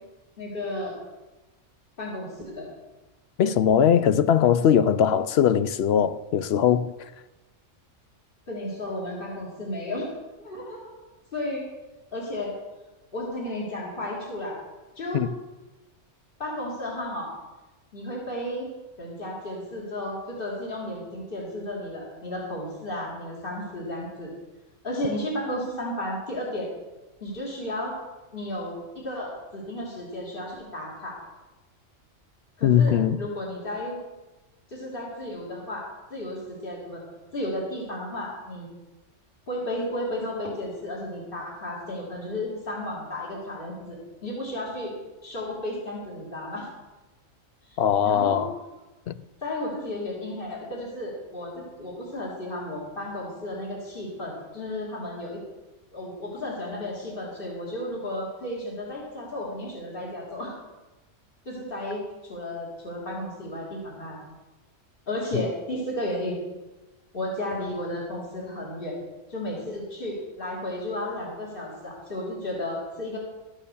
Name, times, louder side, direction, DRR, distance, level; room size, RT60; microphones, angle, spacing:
voice 1, 0.4-1.0 2.0-2.7 8.5-10.1 10.4-10.9 11.3-11.6 12.1-12.5 13.1-14.6 15.0-15.2 16.4-17.3 17.9-18.7 19.0-24.3 24.8-26.7 27.2-27.9 28.3-31.2 32.6-34.0 34.7-37.0 37.3-38.7 39.5-44.9 45.2-46.7 48.0-48.5 49.4-55.4 55.9-60.5 61.4-64.2 65.1-66.4 67.1-69.0 69.3-73.2, left 1 dB, 45° left, 3.4 m, -33 dB
voice 2, 3.4-6.9 15.1-15.3 32.6-33.2 47.8-48.5 49.1-49.2 65.3-65.4, left 9 dB, 65° left, 0.8 m, -20 dB
13.0 x 9.1 x 7.0 m
omnidirectional pair, 1.3 m